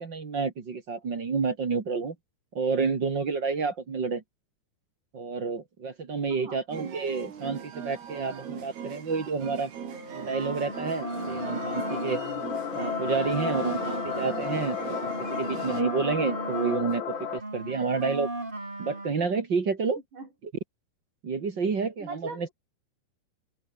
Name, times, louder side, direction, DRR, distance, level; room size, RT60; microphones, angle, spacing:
voice 1, 0.0-2.2 2.5-4.2 5.1-9.7 10.2-12.2 12.7-18.3 18.8-20.0 21.2-22.5, right 4 dB, 35° right, 2.2 m, -29 dB
voice 2, 6.3-6.6 20.1-20.3 22.0-22.5, right 3 dB, 55° right, 9.6 m, -40 dB
sound 1, 6.7-15.8, right 7 dB, 85° right, 5.5 m, -40 dB
sound 2, 9.9-12.2 12.5-16.9 17.1-19.2, right 2 dB, 10° right, 4.0 m, -36 dB
sound 3, 10.0-17.4, left 9 dB, 85° left, 1.1 m, -34 dB
open air
omnidirectional pair, 4.5 m